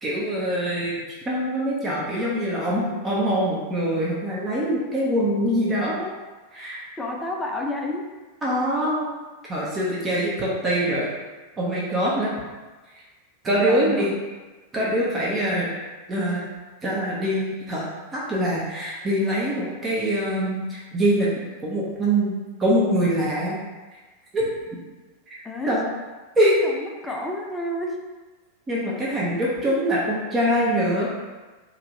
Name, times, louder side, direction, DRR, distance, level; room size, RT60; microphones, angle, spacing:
voice 1, 0.0-6.1 6.5-6.8 8.4-9.1 9.5-11.1 11.6-12.3 13.4-14.2 14.7-15.7 16.1-16.4 16.8-17.9 18.1-21.3 21.6-23.6 23.9-24.0 24.3-24.5 25.3-25.4 25.7-25.9 26.4-26.6 28.7-31.1, right 1 dB, 20° right, -6 dB, 0.8 m, -24 dB
voice 2, 7.0-8.0 13.6-14.1 25.4-25.8 26.6-28.0, left 1 dB, 10° left, 0 dB, 0.4 m, -30 dB
2.6 x 2.5 x 3.1 m, 1.3 s
figure-of-eight pair, 90°, 0 cm